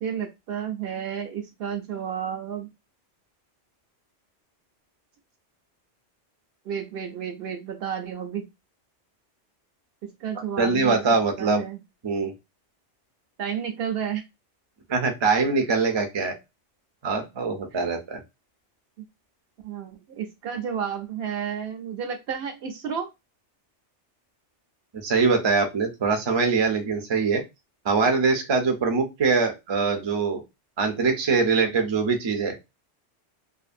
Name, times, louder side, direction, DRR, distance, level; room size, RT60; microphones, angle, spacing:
voice 1, 0.0-2.7 6.7-8.5 10.0-11.0 11.4-11.8 13.4-14.2 17.7-17.8 19.6-23.1, right 8 dB, 65° right, 4 dB, 0.7 m, -31 dB
voice 2, 10.6-11.6 12.0-12.3 14.9-16.3 17.0-18.2 24.9-27.4 27.8-30.4 30.8-32.6, right 4 dB, 40° right, 4 dB, 0.4 m, -23 dB
2.6 x 2.5 x 2.4 m, 0.23 s
omnidirectional pair, 1.2 m